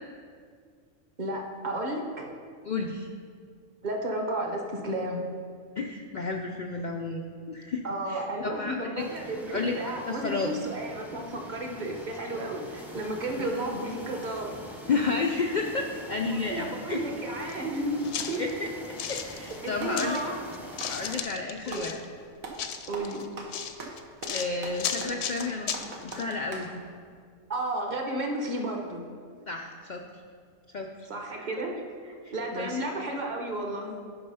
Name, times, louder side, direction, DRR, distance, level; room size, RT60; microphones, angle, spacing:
voice 1, 1.2-2.3 3.8-5.3 7.8-14.5 16.5-18.4 19.6-20.5 21.7-21.9 22.9-23.2 27.5-29.0 31.1-34.0, right 1 dB, 35° right, 2 dB, 1.0 m, -33 dB
voice 2, 2.7-3.1 5.8-9.0 9.5-10.5 13.4-13.5 14.9-17.0 18.4-20.2 20.9-21.9 24.3-25.7 26.0-26.8 29.5-30.0 30.7-31.1 31.4-31.7 32.2-32.8, left 4 dB, 85° left, 2 dB, 0.4 m, -32 dB
sound 1, 9.0-21.2, equal, ahead, 0.6 m, -44 dB
sound 2, 17.5-17.6 18.0-20.3 20.5-22.0 22.5-26.2 26.6-26.7, left 8 dB, 65° left, 0.7 m, -35 dB
Clapping, 19.3-20.1 20.7-21.9 22.4-22.7 22.9-26.7, right 3 dB, 80° right, 1.5 m, -41 dB
8.7 x 5.4 x 5.5 m, 2.1 s
omnidirectional pair, 1.4 m